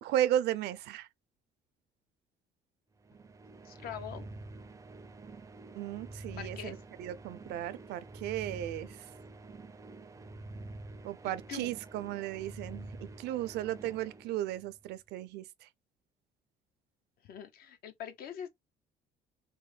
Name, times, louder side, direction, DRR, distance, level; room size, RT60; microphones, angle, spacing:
voice 1, 0.0-1.1 5.7-9.0 11.0-15.7, right 12 dB, 80° right, 0.5 m, -35 dB
sound 1, 3.0-14.9, right 2 dB, 20° right, 0.4 m, -48 dB
voice 2, 3.6-4.3 6.4-6.8 11.2-11.7 17.2-18.5, left 9 dB, 65° left, 0.7 m, -43 dB
3.0 x 2.1 x 3.2 m
cardioid pair, 110°, 17 cm